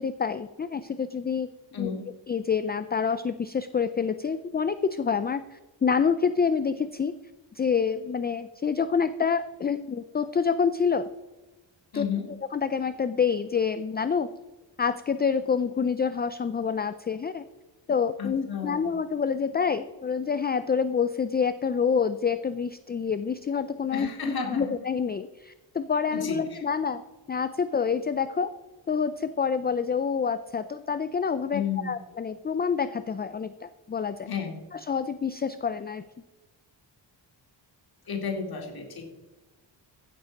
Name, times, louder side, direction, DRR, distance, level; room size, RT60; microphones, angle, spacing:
voice 1, 0.0-1.5 1.8-1.9 2.3-7.1 7.5-11.1 11.9-12.0 12.5-14.3 14.8-17.4 17.9-27.0 27.3-28.5 28.9-34.3 34.7-36.0, left 6 dB, 25° left, 12 dB, 0.3 m, -27 dB
voice 2, 11.9-12.3 18.2-18.9 23.9-24.8 26.1-26.6 31.5-31.9 34.3-34.6 38.1-39.1, left 6 dB, 50° left, 2 dB, 2.6 m, -32 dB
15.5 x 7.9 x 5.2 m, 1.2 s
wide cardioid pair, 170°, 45 cm